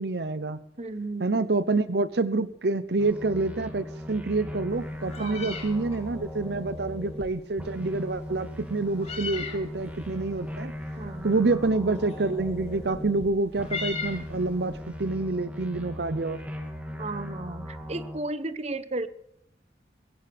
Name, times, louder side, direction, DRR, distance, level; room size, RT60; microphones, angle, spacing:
voice 1, 0.0-0.6 1.2-10.7 11.2-16.4, right 3 dB, 65° right, 14 dB, 0.8 m, -27 dB
voice 2, 0.8-1.5 5.2-5.5 11.0-11.3 17.0-19.1, right 2 dB, 40° right, 12 dB, 1.0 m, -34 dB
sound 1, 3.0-7.3 7.6-13.3 13.6-18.2, equal, 10° right, 2.6 m, -38 dB
Meow, 4.7-14.8, left 4 dB, 35° left, 3.3 m, -41 dB
20.0 x 16.5 x 3.5 m, 0.73 s
head